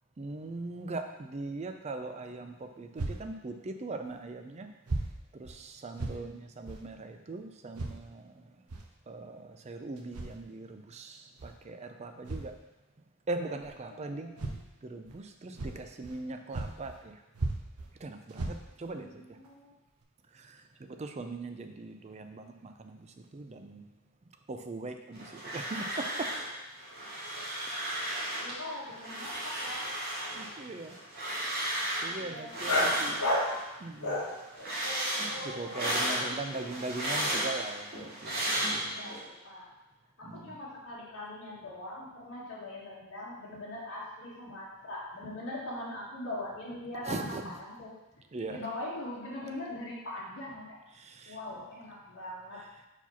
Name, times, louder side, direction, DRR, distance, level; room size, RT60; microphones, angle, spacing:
voice 1, 0.2-4.7 5.3-8.6 9.1-12.6 13.3-14.3 14.8-17.2 18.0-19.4 20.3-23.9 24.5-26.3 30.2-31.0 32.0-33.2 33.8-34.3 35.4-39.0 40.2-40.6 47.1-47.5 48.3-48.6 50.9-51.4 52.5-52.9, right 2 dB, 30° right, 6 dB, 0.4 m, -40 dB
sound 1, 2.9-3.2 4.0-4.1 4.8-5.1 5.4-5.6 5.9-6.2 6.6-6.8 7.7-8.0 8.7-8.9 10.0-10.4 11.4-11.5 12.2-12.5 13.6-13.7 14.4-14.6 15.0-15.2 15.5-16.2 16.5-17.0 17.3-17.9 18.3-18.9 19.4-19.5 20.0-20.1, right 2 dB, 85° right, 0.8 m, -36 dB
voice 2, 6.0-6.3 13.9-14.6 19.0-19.7 28.0-28.1 28.4-29.8 32.0-33.4 35.6-36.6 38.9-39.7 40.2-47.9 48.5-50.8 51.2-52.6, left 1 dB, 60° left, -8 dB, 1.9 m, -42 dB
sound 2, 25.1-26.5 26.8-28.6 28.9-33.6 34.0-39.2, right 1 dB, 45° right, 2.0 m, -34 dB
sound 3, 32.7-33.5 34.0-36.2, left 1 dB, 75° left, 2.0 m, -31 dB
4.7 x 4.4 x 5.6 m, 0.99 s
head